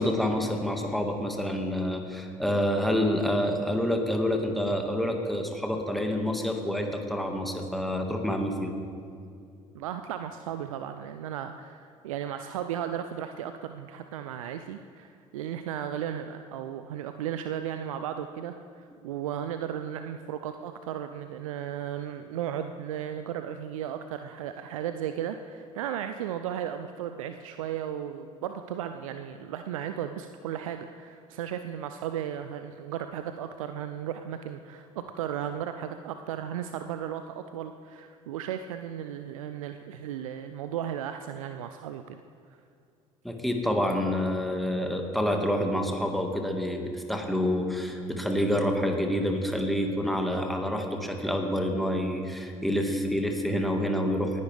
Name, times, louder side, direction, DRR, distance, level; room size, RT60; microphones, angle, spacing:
voice 1, 0.0-8.7 43.2-54.4, equal, ahead, 2 dB, 1.9 m, -28 dB
voice 2, 9.7-42.2, right 9 dB, 75° right, 8 dB, 0.5 m, -35 dB
19.0 x 10.5 x 3.5 m, 2.4 s
figure-of-eight pair, 60°, 17 cm